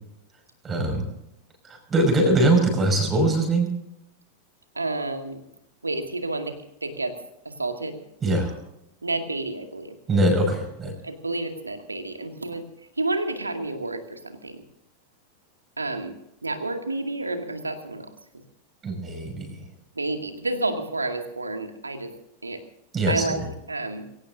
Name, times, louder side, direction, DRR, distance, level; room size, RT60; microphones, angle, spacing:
voice 1, 0.6-1.0 1.6-3.7 8.2-8.6 10.1-10.9 18.8-19.7 22.9-23.5, right 2 dB, 20° right, 3 dB, 5.7 m, -22 dB
voice 2, 4.8-5.4 5.8-6.5 6.8-7.1 7.6-8.0 9.0-9.9 11.0-12.6 13.0-14.5 15.8-16.1 16.4-18.1 20.0-22.1 22.4-22.6 23.1-23.4 23.7-24.0, right 2 dB, 80° right, 6 dB, 2.2 m, -29 dB
23.5 x 17.5 x 2.7 m, 0.83 s
figure-of-eight pair, 90°, 0 cm